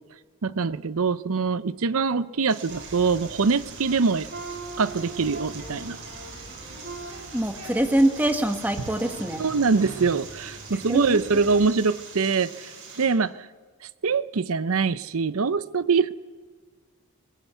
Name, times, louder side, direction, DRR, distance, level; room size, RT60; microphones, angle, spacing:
voice 1, 0.4-4.3 4.8-6.0 9.4-12.5 13.0-13.5 14.0-16.1, right 4 dB, 70° right, 0.7 m, -23 dB
sound 1, 2.5-13.1, right 5 dB, 90° right, 7.4 m, -44 dB
sound 2, 2.7-11.7, right 2 dB, 55° right, 3.2 m, -42 dB
sound 3, 4.9-10.1, equal, 50° left, 4.5 m, -46 dB
voice 2, 7.3-9.4 10.9-11.2, right 1 dB, 10° right, 1.4 m, -24 dB
21.5 x 20.0 x 8.1 m
head